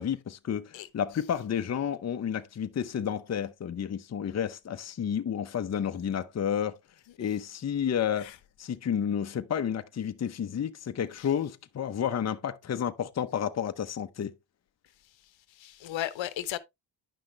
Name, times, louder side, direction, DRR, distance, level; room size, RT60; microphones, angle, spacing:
voice 1, 0.0-6.8 7.2-8.3 8.6-14.3, left 8 dB, 35° left, 0.8 m, -31 dB
voice 2, 15.5-16.6, left 13 dB, 75° left, 1.0 m, -35 dB
10.0 x 5.8 x 3.1 m
cardioid pair, 115°, 45 cm